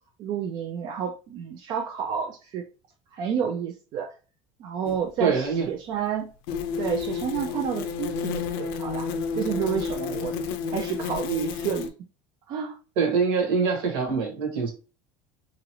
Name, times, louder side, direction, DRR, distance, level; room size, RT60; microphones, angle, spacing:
voice 1, 0.2-2.6 3.1-4.1 4.6-6.3 6.8-10.4 10.6-11.9 12.5-12.8, right 7 dB, 45° right, 3 dB, 0.4 m, -30 dB
sound 1, 4.8-5.0 6.5-11.9, left 6 dB, 80° left, 0.5 m, -31 dB
voice 2, 5.2-5.7 13.0-14.7, right 5 dB, 75° right, 2 dB, 1.5 m, -24 dB
3.0 x 2.4 x 3.0 m, 0.33 s
cardioid pair, 145°, 11 cm